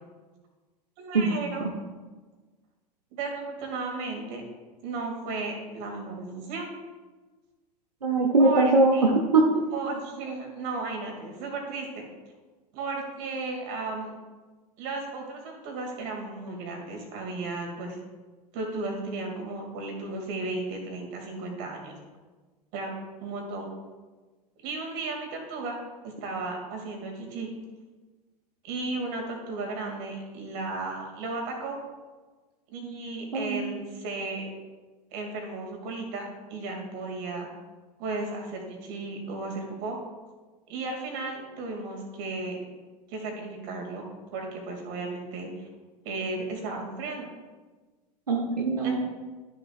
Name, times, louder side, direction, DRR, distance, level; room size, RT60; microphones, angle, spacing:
voice 1, 1.0-1.7 3.1-4.4 4.8-6.7 8.4-9.1 9.7-12.0 12.7-14.1 14.8-18.0 18.5-21.9 22.7-22.9 23.2-23.7 24.6-27.5 28.6-31.8 32.7-34.5 35.1-37.5 38.0-40.0 40.7-42.6 43.1-44.0 44.3-45.7 46.0-47.3 48.8-49.0, right 3 dB, 50° right, 2 dB, 2.3 m, -34 dB
voice 2, 8.0-9.4 33.3-33.6 48.3-49.0, right 3 dB, 80° right, 1 dB, 0.8 m, -21 dB
12.5 x 6.5 x 2.4 m, 1.3 s
figure-of-eight pair, 80°, 20 cm